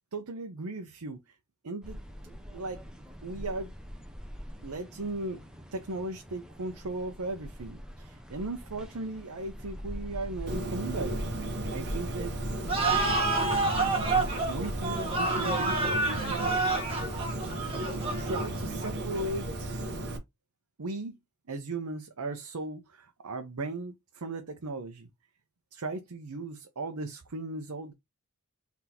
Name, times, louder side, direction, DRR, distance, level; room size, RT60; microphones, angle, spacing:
voice 1, 0.1-1.3 1.6-2.8 3.2-3.7 4.6-5.4 5.7-11.2 11.7-12.4 14.1-16.5 18.1-20.0 20.8-21.2 21.5-25.1 25.7-27.9, right 2 dB, 80° right, 0.7 m, -37 dB
sound 1, 1.8-19.3, equal, 5° right, 0.9 m, -42 dB
Bird, 10.5-20.2, right 1 dB, 50° right, 1.1 m, -35 dB
sound 2, 12.7-19.1, right 3 dB, 25° right, 1.5 m, -29 dB
4.0 x 3.5 x 2.8 m
head